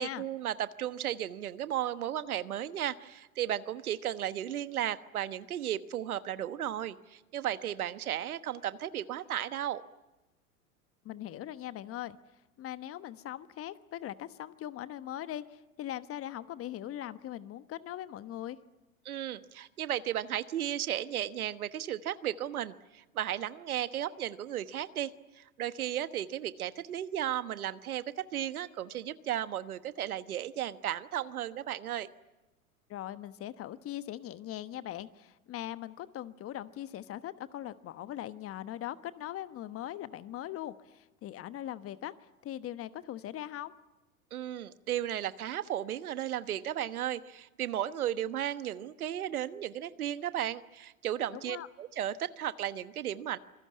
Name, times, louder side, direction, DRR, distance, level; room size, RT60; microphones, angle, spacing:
voice 1, 0.0-9.8 19.0-25.1 25.4-32.1 44.3-53.4, right 11 dB, 75° right, 13 dB, 1.3 m, -35 dB
voice 2, 11.0-12.2 12.6-18.6 32.9-42.1 42.4-43.7 51.3-51.7, left 12 dB, 30° left, 13 dB, 1.1 m, -40 dB
26.5 x 21.0 x 9.6 m, 1.0 s
hypercardioid pair, 100°, 43 cm